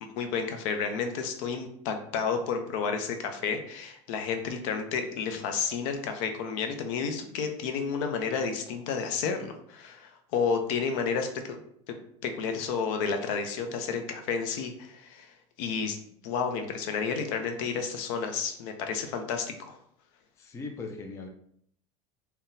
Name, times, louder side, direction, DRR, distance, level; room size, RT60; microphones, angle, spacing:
voice 1, 0.0-11.6 12.2-16.0 16.2-19.8, left 5 dB, 65° left, 5 dB, 0.6 m, -31 dB
voice 2, 20.4-21.3, left 3 dB, 15° left, 3 dB, 0.3 m, -39 dB
3.8 x 2.2 x 2.6 m, 0.68 s
supercardioid pair, 120°, 18 cm